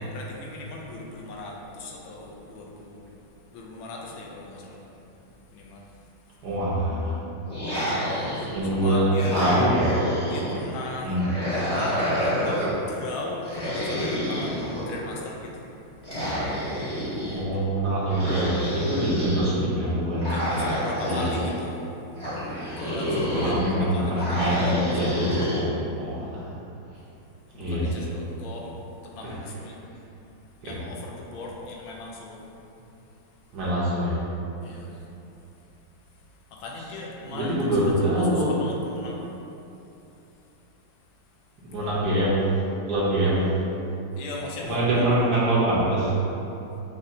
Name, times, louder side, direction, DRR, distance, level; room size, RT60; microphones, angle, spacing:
voice 1, 0.1-4.8 5.5-5.9 6.3-6.4 8.0-9.4 10.2-11.2 11.5-17.6 20.2-21.9 22.8-25.4 27.5-29.8 30.6-32.5 34.6-34.9 36.5-37.7 38.2-39.3 41.8-42.0 44.2-45.2, left 2 dB, 80° left, -1 dB, 1.4 m, -38 dB
voice 2, 6.4-7.2 8.5-9.1 9.3-9.9 11.0-11.2 17.3-20.4 21.0-21.5 23.3-26.5 27.6-28.1 29.2-29.4 30.6-30.8 33.5-34.2 37.3-38.5 41.6-42.4 42.9-43.4 44.7-46.1, right 1 dB, 65° right, -8 dB, 1.2 m, -25 dB
sound 1, 7.5-8.7 9.1-10.6 11.2-12.8 13.4-15.1 16.0-17.4 18.1-19.5 20.2-21.5 22.2-23.7 24.2-25.6, equal, 25° left, 1.3 m, -28 dB
6.2 x 2.8 x 2.6 m, 2.9 s
omnidirectional pair, 2.2 m